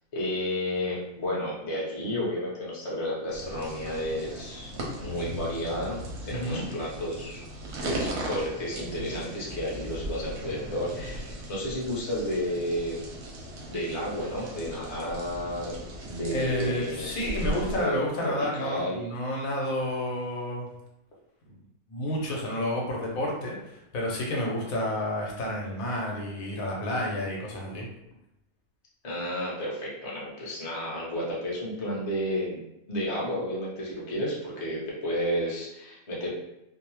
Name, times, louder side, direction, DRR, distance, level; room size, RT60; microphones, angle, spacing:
voice 1, 0.1-4.7 5.0-7.4 7.8-13.0 13.7-15.8 16.0-17.1 17.4-19.0 29.0-32.6 32.9-36.3, equal, 35° left, -6 dB, 0.6 m, -32 dB
sound 1, 3.3-17.8, right 1 dB, 60° right, 0.8 m, -38 dB
sound 2, 4.7-11.2, equal, 5° right, 0.7 m, -42 dB
voice 2, 6.3-6.6 16.3-20.7 21.9-27.9, left 1 dB, 75° left, -2 dB, 1.1 m, -30 dB
2.6 x 2.0 x 2.9 m, 0.86 s
omnidirectional pair, 1.5 m